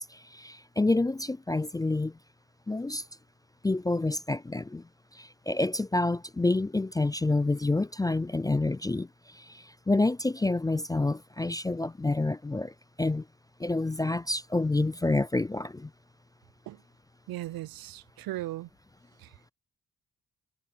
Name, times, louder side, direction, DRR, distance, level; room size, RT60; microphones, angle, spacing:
voice 1, 0.1-2.1 2.7-3.0 3.6-4.8 5.1-13.2 13.6-15.9, left 2 dB, 10° left, 0.3 m, -28 dB
voice 2, 17.3-18.7 19.2-19.5, right 16 dB, 80° right, 0.6 m, -38 dB
cardioid pair, 55°, 35 cm